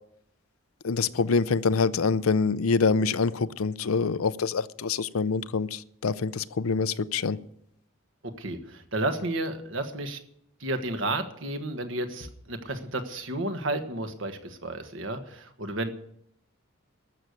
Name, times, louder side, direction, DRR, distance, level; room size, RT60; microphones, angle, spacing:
voice 1, 0.8-7.4, left 4 dB, 85° left, 0.6 m, -25 dB
voice 2, 8.4-10.2 10.6-15.9, right 2 dB, 65° right, 1.4 m, -32 dB
13.5 x 6.6 x 9.6 m
head